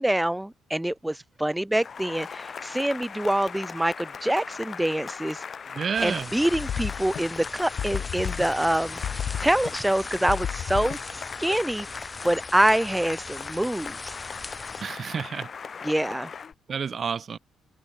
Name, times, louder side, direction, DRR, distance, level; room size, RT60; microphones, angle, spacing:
voice 1, 0.0-5.4 6.0-9.0 9.4-11.0 11.4-14.1 15.8-16.3, right 1 dB, 5° right, 0.7 m, -25 dB
Cheering / Applause, 1.7-16.5, left 6 dB, 45° left, 1.0 m, -39 dB
voice 2, 5.7-6.3 14.8-15.5 16.7-17.4, right 6 dB, 45° right, 0.5 m, -29 dB
sound 1, 5.9-14.8, left 3 dB, 20° left, 1.9 m, -40 dB
sound 2, 6.5-7.5 7.8-8.7 9.0-10.0 10.3-11.2, left 9 dB, 65° left, 0.3 m, -32 dB
cardioid pair, 90°, 0 cm